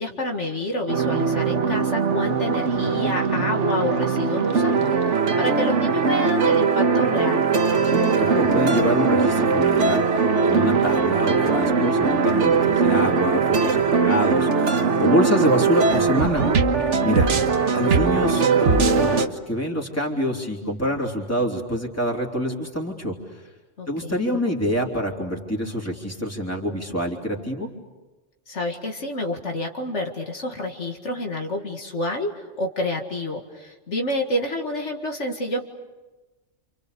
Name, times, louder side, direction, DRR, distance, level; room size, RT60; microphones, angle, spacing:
voice 1, 0.0-7.5 17.1-17.5 23.8-24.4 28.5-35.6, left 1 dB, 70° left, 2 dB, 2.3 m, -28 dB
sound 1, 0.9-19.3, right 5 dB, 70° right, 1.6 m, -20 dB
voice 2, 7.8-16.4 17.0-17.3 17.7-23.2 23.9-27.7, equal, 10° left, 0 dB, 3.6 m, -26 dB
28.5 x 28.5 x 6.9 m, 1.2 s
omnidirectional pair, 1.3 m